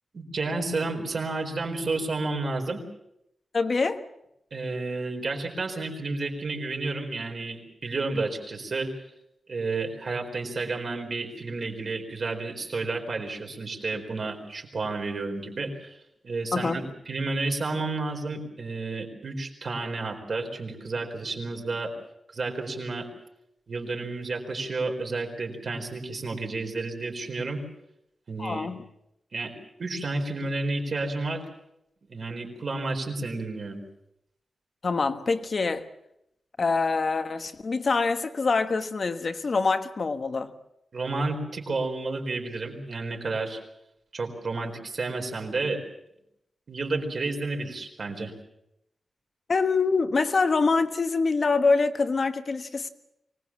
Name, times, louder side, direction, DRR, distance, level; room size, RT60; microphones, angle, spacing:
voice 1, 0.1-2.8 4.5-8.9 9.5-16.0 16.2-21.9 22.3-23.1 23.7-27.6 28.3-28.7 29.3-29.5 29.8-31.4 32.1-33.8 40.9-43.6 44.1-45.8 46.7-48.3, right 3 dB, 45° right, 4.4 m, -31 dB
voice 2, 3.5-4.1 16.5-16.9 28.4-28.8 34.8-35.9 36.6-40.5 49.5-52.9, left 4 dB, 40° left, 1.3 m, -25 dB
24.5 x 19.5 x 7.3 m
wide cardioid pair, 180°, 0 cm